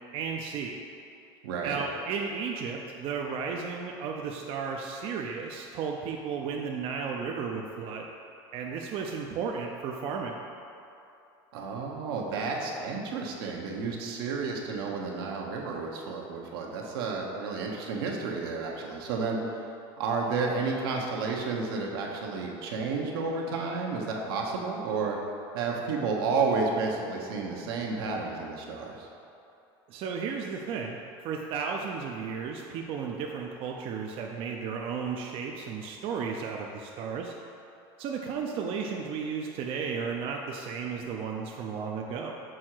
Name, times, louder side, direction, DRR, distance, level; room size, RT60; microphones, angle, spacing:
voice 1, 0.1-0.8 1.6-8.1 8.5-10.4 29.9-37.3 38.0-42.3, right 5 dB, 50° right, 1 dB, 0.5 m, -34 dB
voice 2, 1.4-1.8 11.5-19.4 20.0-25.2 25.5-29.1, right 4 dB, 85° right, -1 dB, 0.9 m, -31 dB
6.3 x 3.7 x 4.5 m, 2.7 s
supercardioid pair, 110°, 12 cm